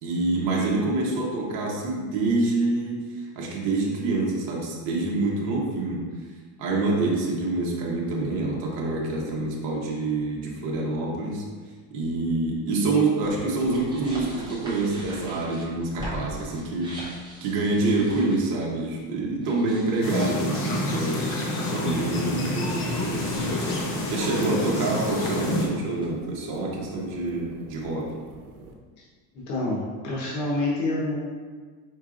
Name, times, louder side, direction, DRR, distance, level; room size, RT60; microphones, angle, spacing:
voice 1, 0.0-6.0 6.6-11.4 11.9-17.1 17.4-21.2 21.7-23.6 23.9-28.1, right 2 dB, 50° right, -3 dB, 1.0 m, -26 dB
sound 1, 13.2-18.7 19.4-21.8 22.2-24.8 25.1-25.2 25.6-26.1, equal, 10° right, 0.7 m, -43 dB
sound 2, 20.0-25.7, left 2 dB, 30° left, 0.6 m, -28 dB
sound 3, 22.4-28.8, right 2 dB, 85° right, 0.8 m, -46 dB
voice 2, 29.3-31.2, left 2 dB, 80° left, -5 dB, 1.1 m, -27 dB
4.6 x 4.5 x 2.5 m, 1.5 s
cardioid pair, 165°, 42 cm